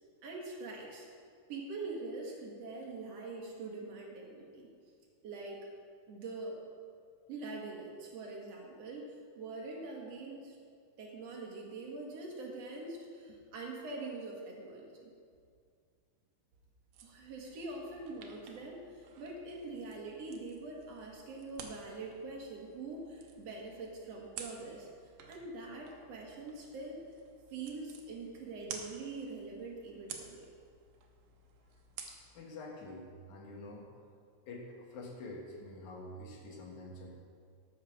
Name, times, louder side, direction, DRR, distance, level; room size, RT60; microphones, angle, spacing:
voice 1, 0.2-1.1 1.5-4.7 5.2-5.7 6.1-6.6 7.3-10.6 11.0-15.1 17.0-24.9 25.3-27.0 27.5-30.5, right 3 dB, 55° right, -1 dB, 2.6 m, -44 dB
sound 1, 16.9-32.3, right 6 dB, 85° right, 2.6 m, -52 dB
voice 2, 32.1-33.9 34.5-37.1, left 2 dB, 70° left, -1 dB, 2.7 m, -47 dB
13.0 x 6.7 x 5.9 m, 2.2 s
omnidirectional pair, 3.7 m